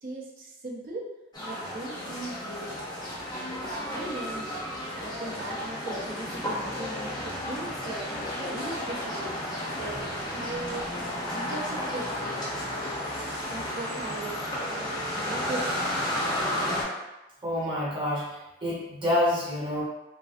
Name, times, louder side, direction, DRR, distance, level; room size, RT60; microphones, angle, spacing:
voice 1, 0.0-1.1 1.4-2.9 3.3-4.5 5.0-9.4 9.7-12.7 13.5-15.9, right 2 dB, 45° right, -3 dB, 0.5 m, -39 dB
sound 1, 1.3-16.8, left 1 dB, 20° left, 0.6 m, -32 dB
voice 2, 17.4-18.3 18.6-19.8, left 1 dB, 25° right, -7 dB, 0.9 m, -27 dB
3.2 x 2.6 x 2.4 m, 1.0 s
head